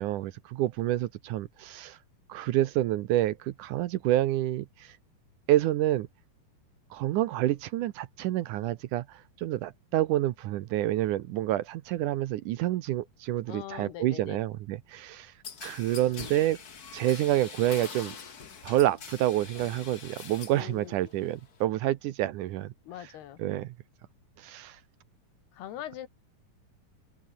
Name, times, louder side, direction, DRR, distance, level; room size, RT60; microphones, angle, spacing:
voice 1, 0.0-2.0 2.3-5.0 5.5-6.1 6.9-15.3 15.6-16.6 16.9-18.2 18.6-22.7 23.0-23.1 23.4-23.8 24.4-24.8, right 14 dB, 75° right, 1.9 m, -28 dB
voice 2, 13.5-14.4 20.5-20.9 22.9-23.4 25.5-26.1, left 11 dB, 85° left, 3.8 m, -41 dB
sound 1, 15.4-20.7 21.0-21.6, left 6 dB, 45° left, 1.1 m, -44 dB
omnidirectional pair, 4.5 m